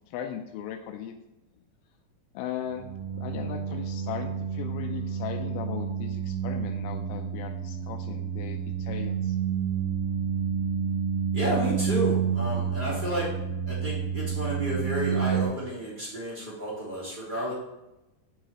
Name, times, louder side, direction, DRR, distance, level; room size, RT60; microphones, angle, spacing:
voice 1, 0.1-1.1 2.3-2.9 3.1-9.4, left 9 dB, 85° left, 5 dB, 2.4 m, -37 dB
sound 1, 2.7-15.5, right 7 dB, 90° right, 2.6 m, -30 dB
voice 2, 11.3-13.3 13.7-17.5, equal, 15° right, -7 dB, 2.4 m, -31 dB
10.5 x 4.8 x 2.9 m, 0.95 s
omnidirectional pair, 4.3 m